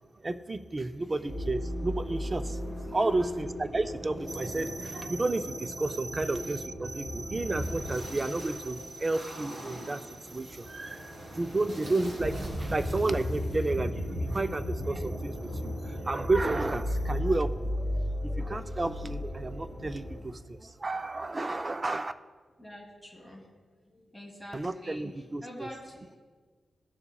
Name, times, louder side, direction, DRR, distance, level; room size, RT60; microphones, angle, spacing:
voice 1, 0.2-22.1 24.5-25.4, right 2 dB, 30° right, 9 dB, 0.4 m, -32 dB
voice 2, 0.9-1.3 2.9-3.3 6.1-6.2 22.6-23.5 23.8-26.2, equal, 10° right, -2 dB, 2.6 m, -46 dB
sound 1, 1.3-20.2, equal, 60° right, 2.7 m, -36 dB
18.5 x 6.9 x 2.3 m, 1.5 s
wide cardioid pair, 110°, 0 cm